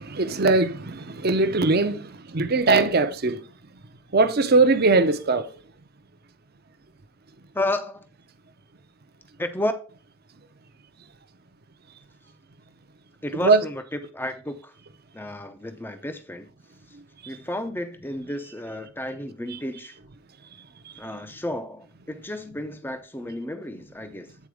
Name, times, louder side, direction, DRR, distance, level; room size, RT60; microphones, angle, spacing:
voice 1, 0.0-3.4 4.1-5.5 13.4-13.6, right 3 dB, 45° right, 0.7 m, -20 dB
voice 2, 7.5-8.1 9.4-9.7 13.2-14.7 15.1-16.5 16.9-17.0 17.3-20.0 21.0-24.4, left 1 dB, 10° left, 0.5 m, -32 dB
8.4 x 4.1 x 4.9 m
head